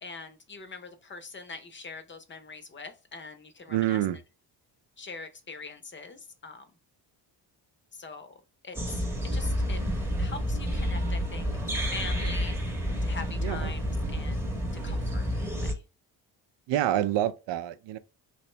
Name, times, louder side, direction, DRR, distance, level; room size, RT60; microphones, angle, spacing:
voice 1, 0.0-4.0 5.0-6.7 7.9-8.4 8.6-9.1 9.3-9.8 10.2-11.5 11.8-12.6 13.0-14.6 14.8-15.8, left 4 dB, 25° left, 0.6 m, -43 dB
voice 2, 3.7-4.2 13.4-13.7 16.7-18.0, right 12 dB, 75° right, 0.5 m, -27 dB
sound 1, 8.7-15.7, equal, 5° right, 0.8 m, -29 dB
3.2 x 2.8 x 3.1 m
cardioid pair, 110°, 44 cm